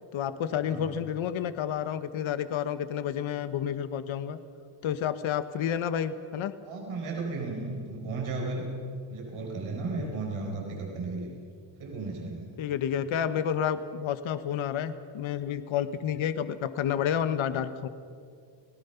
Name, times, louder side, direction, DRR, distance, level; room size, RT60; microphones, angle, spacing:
voice 1, 0.1-4.4 4.8-6.5 10.0-10.1 12.6-17.9, left 9 dB, 80° left, 12 dB, 1.2 m, -30 dB
voice 2, 0.6-1.0 6.6-8.7 9.1-11.3 11.8-12.5, right 3 dB, 90° right, 0 dB, 4.7 m, -34 dB
29.5 x 18.5 x 5.7 m, 2.2 s
cardioid pair, 90°, 47 cm